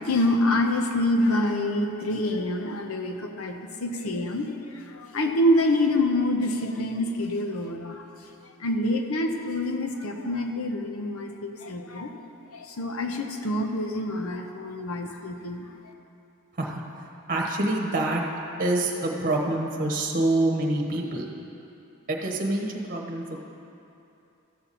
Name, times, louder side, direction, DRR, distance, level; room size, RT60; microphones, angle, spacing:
voice 1, 0.1-4.5 4.9-8.0 8.6-12.1 12.5-15.7, left 1 dB, 75° left, 3 dB, 0.8 m, -26 dB
voice 2, 17.3-18.2 18.6-21.3 22.1-23.4, right 2 dB, 40° right, 0 dB, 1.2 m, -26 dB
14.0 x 6.9 x 4.2 m, 2.8 s
head